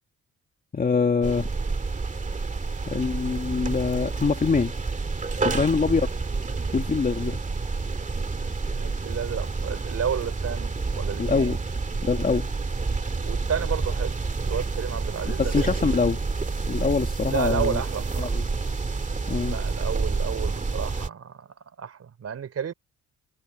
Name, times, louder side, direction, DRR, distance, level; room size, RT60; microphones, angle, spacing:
voice 1, 0.7-1.5 2.9-4.7 5.4-6.1 6.7-7.4 11.2-11.6 12.0-12.5 15.4-16.2 16.7-17.8 18.2-18.4 19.3-19.6, left 5 dB, 30° left, 1.9 m, -24 dB
sound 1, 1.2-21.1, right 4 dB, 25° right, 2.2 m, -29 dB
voice 2, 5.4-5.8 8.8-11.6 13.3-14.2 14.4-16.0 17.2-18.4 19.4-22.7, right 7 dB, 55° right, 4.1 m, -32 dB
cardioid pair, 90°, 30 cm